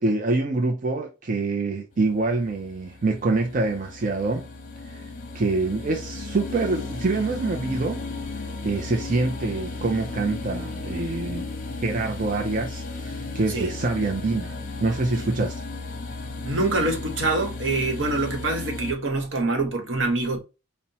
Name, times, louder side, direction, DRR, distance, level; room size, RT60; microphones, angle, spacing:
voice 1, 0.0-4.5 4.8-5.1 5.3-8.0 8.6-11.5 11.8-15.6, right 3 dB, 45° right, 0.5 m, -26 dB
sound 1, 1.9-18.9, left 3 dB, 45° left, 0.9 m, -35 dB
voice 2, 16.4-20.4, right 2 dB, 80° right, 1.1 m, -25 dB
5.3 x 2.1 x 2.8 m
head